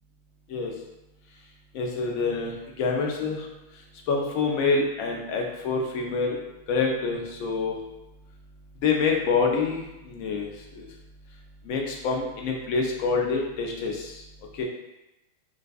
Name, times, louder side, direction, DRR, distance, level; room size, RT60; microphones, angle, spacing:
voice 1, 1.7-2.5 2.8-3.5 4.1-6.4 6.7-7.7 8.8-10.5 10.8-10.9 11.7-14.2 14.6-14.7, left 4 dB, 45° left, 1 dB, 0.4 m, -26 dB
2.4 x 2.4 x 2.3 m, 0.95 s
supercardioid pair, 165°, 0 cm